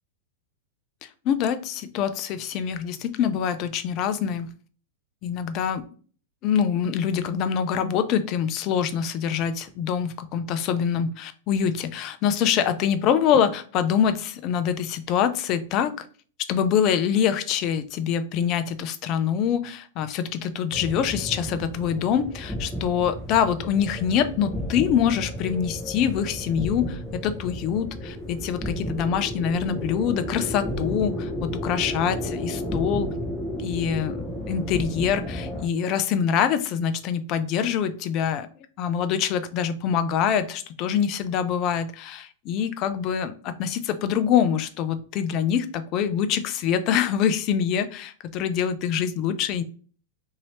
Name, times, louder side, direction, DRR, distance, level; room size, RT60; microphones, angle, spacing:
voice 1, 1.2-4.5 5.2-5.8 6.4-16.1 16.5-33.1 33.6-38.5 38.8-49.6, left 8 dB, 45° left, 11 dB, 0.4 m, -25 dB
sound 1, 20.7-35.7, equal, ahead, 0.8 m, -32 dB
2.8 x 2.7 x 3.1 m, 0.43 s
hypercardioid pair, 110°, 0 cm